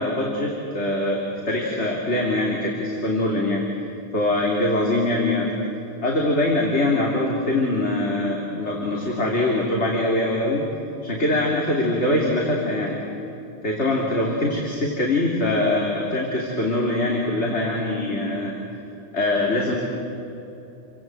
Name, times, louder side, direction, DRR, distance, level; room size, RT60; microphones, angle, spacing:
voice 1, 0.0-3.7 4.1-5.5 6.0-10.7 11.0-13.0 13.6-18.6 19.1-19.8, left 1 dB, 85° left, -2 dB, 3.5 m, -23 dB
29.5 x 24.0 x 7.8 m, 2.9 s
omnidirectional pair, 1.1 m